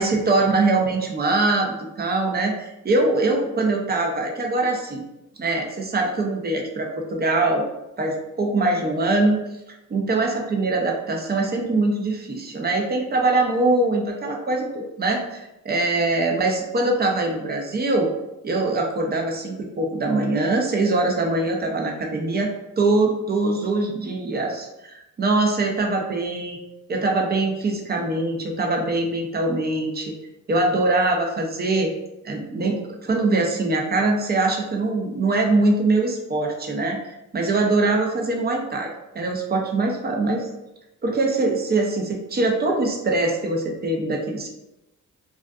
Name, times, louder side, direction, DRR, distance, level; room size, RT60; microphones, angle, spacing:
voice 1, 0.0-5.0 5.4-7.6 8.0-9.4 9.9-18.1 18.4-22.5 22.8-26.6 26.9-30.1 30.5-31.9 32.2-37.0 37.3-40.4 41.0-44.5, right 2 dB, 30° right, 1 dB, 0.5 m, -23 dB
2.4 x 2.4 x 2.3 m, 0.94 s
cardioid pair, 85°, 34 cm